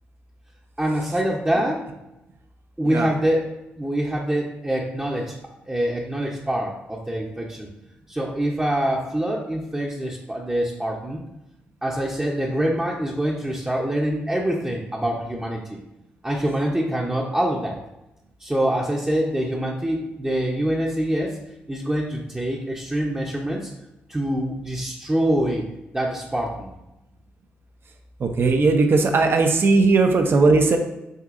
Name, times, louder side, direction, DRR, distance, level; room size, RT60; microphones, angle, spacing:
voice 1, 0.8-1.8 2.8-3.5 3.8-5.3 5.7-7.7 8.1-11.2 11.8-15.8 16.2-17.8 18.4-21.4 21.7-23.7 24.1-25.7 25.9-26.7, right 1 dB, 15° right, -3 dB, 0.7 m, -25 dB
voice 2, 28.2-30.8, right 3 dB, 55° right, 5 dB, 0.6 m, -18 dB
6.3 x 2.6 x 2.5 m, 0.91 s
supercardioid pair, 50°, 5 cm